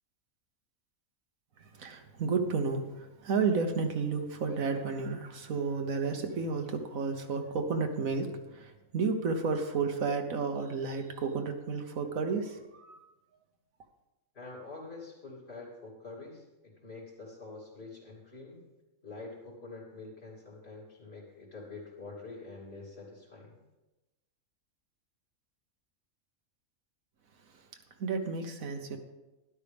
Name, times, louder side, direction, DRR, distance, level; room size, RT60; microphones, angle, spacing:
voice 1, 1.6-13.0 27.4-27.7 28.0-29.0, right 4 dB, 75° right, 5 dB, 1.4 m, -32 dB
voice 2, 14.3-18.6 19.0-23.6, left 3 dB, 45° left, -4 dB, 3.2 m, -46 dB
12.5 x 11.0 x 3.5 m, 1.0 s
omnidirectional pair, 1.5 m